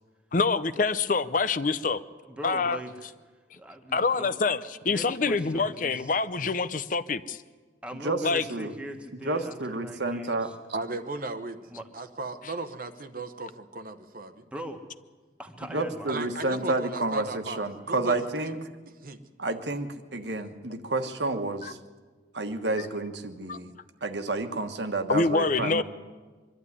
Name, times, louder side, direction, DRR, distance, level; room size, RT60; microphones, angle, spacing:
voice 1, 0.3-2.0 2.4-2.8 3.9-4.6 4.8-7.4 8.2-8.4 21.6-21.7 22.8-22.9 23.5-23.6 25.1-25.8, left 4 dB, 45° left, 13 dB, 0.6 m, -26 dB
voice 2, 2.2-4.4 4.8-6.2 7.8-10.6 11.6-11.9 14.5-14.8 15.4-16.2, right 1 dB, 5° right, 4 dB, 1.5 m, -40 dB
voice 3, 9.2-10.5 15.7-18.7 19.4-21.8 22.3-23.7 24.0-25.8, right 2 dB, 65° right, 7 dB, 1.4 m, -30 dB
voice 4, 10.7-11.6 11.9-14.4 16.1-18.1 18.4-18.5 19.0-19.2, right 3 dB, 45° right, 9 dB, 0.9 m, -36 dB
24.0 x 12.0 x 9.8 m, 1.4 s
head